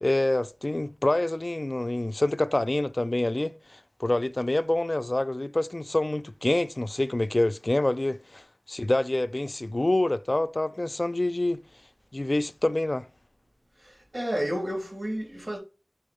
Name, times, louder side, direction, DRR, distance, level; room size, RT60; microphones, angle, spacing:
voice 1, 0.0-11.6 12.1-13.1, left 1 dB, 55° left, 0.3 m, -26 dB
voice 2, 13.8-15.6, equal, 65° right, 3.4 m, -31 dB
5.6 x 4.6 x 5.2 m
wide cardioid pair, 45°, 0 cm